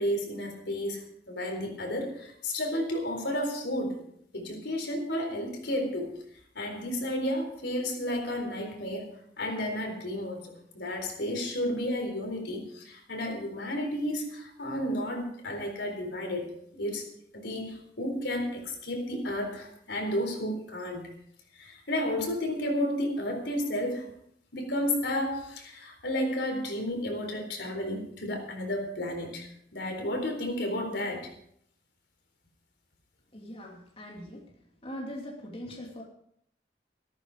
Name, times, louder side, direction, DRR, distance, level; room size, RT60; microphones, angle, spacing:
voice 1, 0.0-4.0 4.3-6.2 6.5-16.5 16.7-17.1 17.3-21.0 21.6-24.1 24.5-31.3, left 1 dB, 80° left, 4 dB, 4.0 m, -32 dB
voice 2, 33.3-34.5 34.8-36.0, equal, 35° left, -2 dB, 2.9 m, -41 dB
14.0 x 13.5 x 5.0 m, 0.68 s
head